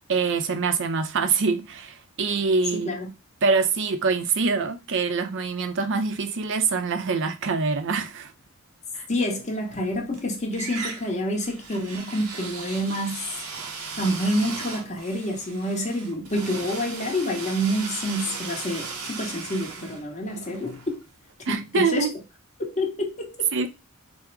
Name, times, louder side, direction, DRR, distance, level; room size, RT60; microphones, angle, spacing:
voice 1, 0.1-2.9 3.4-8.3 8.9-9.0 21.5-22.1 23.5-23.7, right 4 dB, 55° right, 0.6 m, -24 dB
voice 2, 2.7-3.1 9.1-13.4 14.0-21.0 21.5-22.1 22.6-23.5, equal, 30° left, 1.0 m, -28 dB
sound 1, 9.6-10.2 10.5-21.4, right 4 dB, 90° right, 0.9 m, -37 dB
3.6 x 2.1 x 4.4 m
head